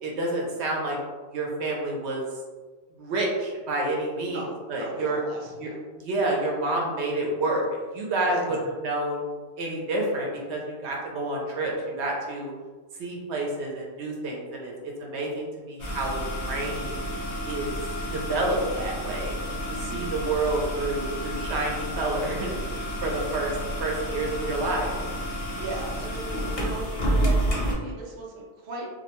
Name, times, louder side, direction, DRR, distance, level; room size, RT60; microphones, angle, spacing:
voice 1, 0.0-1.0 1.3-2.2 3.0-4.4 4.7-5.2 5.6-5.7 6.0-8.6 8.8-12.5 12.9-17.0 17.4-17.8 18.1-19.4 19.7-24.9, right 2 dB, 80° right, -1 dB, 0.9 m, -29 dB
voice 2, 4.2-5.8 8.3-8.6 19.7-20.2 23.0-23.3 25.4-28.9, right 2 dB, 55° right, -2 dB, 0.6 m, -38 dB
sound 1, 15.8-27.7, equal, 45° left, 0.5 m, -30 dB
2.3 x 2.1 x 2.9 m, 1.4 s
omnidirectional pair, 1.1 m